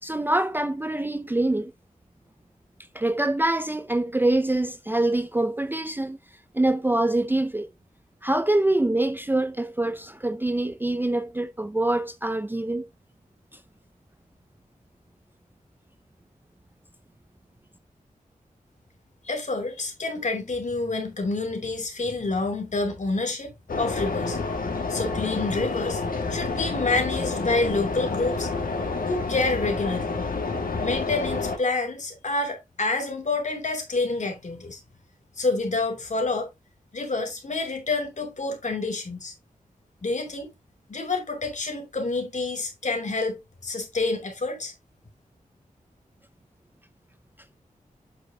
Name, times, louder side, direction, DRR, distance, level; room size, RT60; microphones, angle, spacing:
voice 1, 0.0-1.7 2.9-6.2 6.5-7.7 8.2-12.9, right 1 dB, 15° right, 0.5 m, -25 dB
voice 2, 19.2-24.4 24.9-26.0 26.3-28.8 29.0-30.2 30.8-34.8 35.4-36.5 36.9-39.3 40.0-40.5 40.9-44.7, left 3 dB, 55° left, 2.8 m, -28 dB
sound 1, 23.7-31.6, left 3 dB, 80° left, 1.9 m, -29 dB
8.3 x 6.3 x 2.8 m
wide cardioid pair, 120°, 14 cm